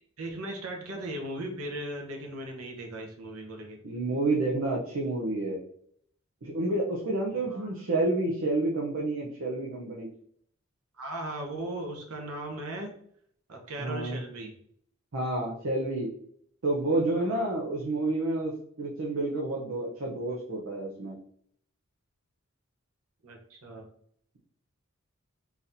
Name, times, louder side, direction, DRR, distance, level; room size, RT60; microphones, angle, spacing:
voice 1, 0.2-3.8 7.3-7.7 11.0-13.0 13.5-14.5 17.2-17.5 23.2-23.9, right 1 dB, 85° right, 2 dB, 0.9 m, -38 dB
voice 2, 3.8-5.6 6.4-10.1 13.8-14.2 15.1-16.1 16.6-21.2, right 2 dB, 65° right, -2 dB, 0.6 m, -29 dB
4.0 x 2.9 x 2.6 m, 0.65 s
head